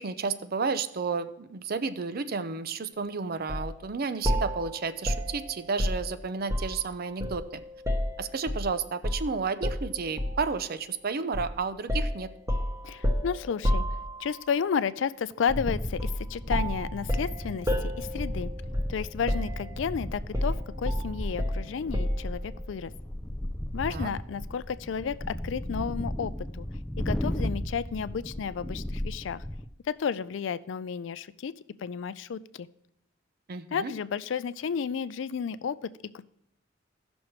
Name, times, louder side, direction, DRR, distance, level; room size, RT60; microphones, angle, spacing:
voice 1, 0.0-7.6 8.2-12.3 23.9-24.1 33.5-33.9, right 5 dB, 55° right, 12 dB, 0.6 m, -32 dB
sound 1, 3.5-3.7 4.2-6.8 7.2-8.7 9.0-9.3 9.6-10.5 11.3-11.5 11.9-14.4 16.0-16.2 16.5-19.0 19.3-19.9 20.3-22.3, equal, 15° right, 0.9 m, -30 dB
voice 2, 12.8-13.8 14.2-18.5 18.9-22.9 23.7-26.7 27.0-29.4 29.9-31.5 31.8-32.7 33.7-36.2, left 6 dB, 70° left, 16 dB, 0.4 m, -32 dB
sound 2, 15.5-29.7, left 1 dB, 5° left, 0.4 m, -35 dB
16.5 x 6.2 x 3.1 m, 0.76 s
head